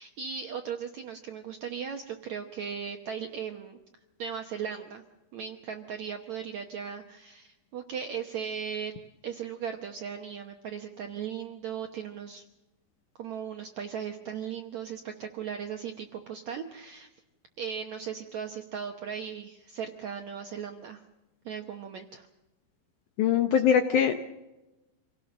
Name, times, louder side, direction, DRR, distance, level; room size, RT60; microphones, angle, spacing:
voice 1, 0.0-3.8 4.2-5.0 5.3-8.9 9.2-12.5 13.2-17.1 17.6-21.0 21.5-22.3, right 7 dB, 70° right, 4 dB, 1.7 m, -37 dB
voice 2, 23.2-24.2, left 8 dB, 75° left, 6 dB, 1.9 m, -22 dB
27.0 x 17.5 x 6.4 m, 1.0 s
omnidirectional pair, 4.7 m